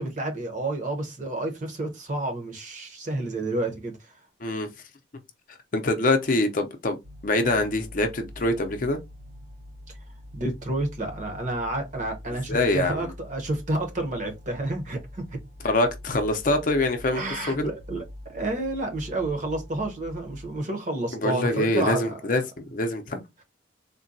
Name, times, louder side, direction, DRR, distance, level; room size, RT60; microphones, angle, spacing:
voice 1, 0.0-4.1 10.3-15.4 17.1-22.2, right 2 dB, 40° right, 0.8 m, -30 dB
voice 2, 5.7-7.0 7.2-9.0 12.5-13.1 15.6-17.2 17.5-17.7 21.1-23.2, left 2 dB, 45° left, 0.5 m, -24 dB
sound 1, 7.0-20.6, left 1 dB, 85° right, 2.3 m, -44 dB
3.7 x 2.2 x 2.6 m
head